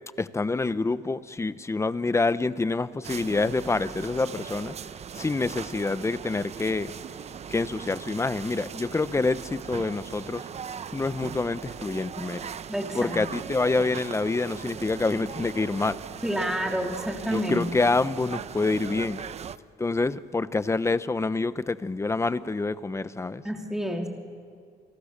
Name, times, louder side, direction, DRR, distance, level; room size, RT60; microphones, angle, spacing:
voice 1, 0.2-4.7 5.1-6.9 7.5-10.4 10.9-12.5 13.0-16.0 17.3-19.2 19.8-23.4, left 3 dB, 15° left, 0.9 m, -27 dB
sound 1, 3.0-19.6, right 7 dB, 40° right, 0.8 m, -39 dB
voice 2, 12.7-13.2 16.2-17.7 23.4-24.1, equal, 5° right, 3.0 m, -29 dB
29.5 x 25.5 x 6.7 m
cardioid pair, 110°, 17 cm